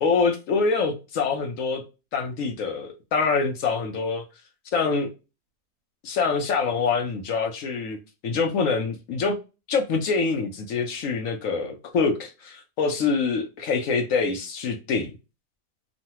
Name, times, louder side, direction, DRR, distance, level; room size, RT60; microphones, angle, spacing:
voice 1, 0.0-1.8 2.1-4.2 4.7-5.1 6.0-8.0 8.2-9.4 9.7-15.1, left 4 dB, 65° left, 0.9 m, -25 dB
3.1 x 2.2 x 2.8 m
omnidirectional pair, 1.6 m